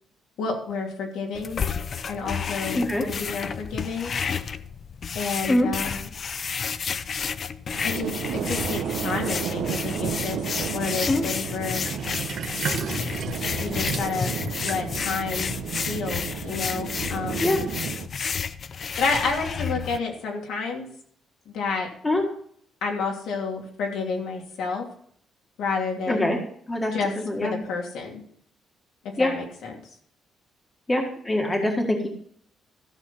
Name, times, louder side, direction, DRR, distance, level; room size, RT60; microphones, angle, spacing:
voice 1, 0.4-1.6 2.1-2.8 3.1-4.1 5.1-6.0 7.8-10.4 10.7-11.9 13.6-14.3 14.6-15.5 15.9-17.4 19.0-20.9 21.5-21.9 22.8-24.9 25.6-26.4 26.9-27.1 27.4-28.2 29.2-29.7, left 4 dB, 80° left, 0 dB, 2.9 m, -30 dB
sound 1, 1.3-20.0, left 6 dB, 35° left, 0.5 m, -31 dB
sound 2, 7.7-18.1, right 8 dB, 80° right, 1.0 m, -32 dB
Sink (filling or washing), 11.7-16.5, right 7 dB, 55° right, 1.1 m, -36 dB
voice 2, 26.1-26.4 26.7-26.9 27.2-27.5 29.2-29.3 30.9-32.1, left 1 dB, 15° left, 2 dB, 1.7 m, -23 dB
14.0 x 6.6 x 5.5 m, 0.63 s
cardioid pair, 160°, 0 cm